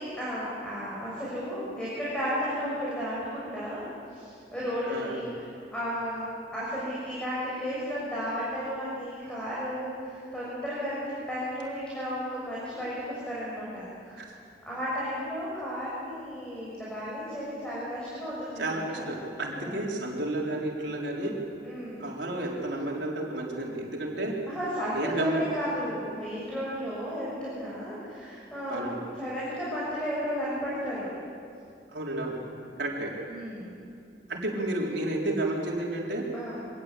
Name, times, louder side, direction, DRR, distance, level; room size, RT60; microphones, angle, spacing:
voice 1, 0.0-3.8 4.1-5.4 5.7-6.2 6.5-14.2 14.7-19.1 19.5-19.7 21.6-22.1 24.5-31.1 33.3-33.7 36.3-36.6, equal, 5° left, -8 dB, 6.5 m, -34 dB
voice 2, 4.8-5.2 14.2-14.3 18.6-21.3 22.0-24.3 24.9-25.4 28.7-29.0 31.9-32.4 32.8-33.1 34.3-36.2, right 1 dB, 75° right, -2 dB, 4.2 m, -31 dB
25.0 x 19.5 x 8.4 m, 2.6 s
head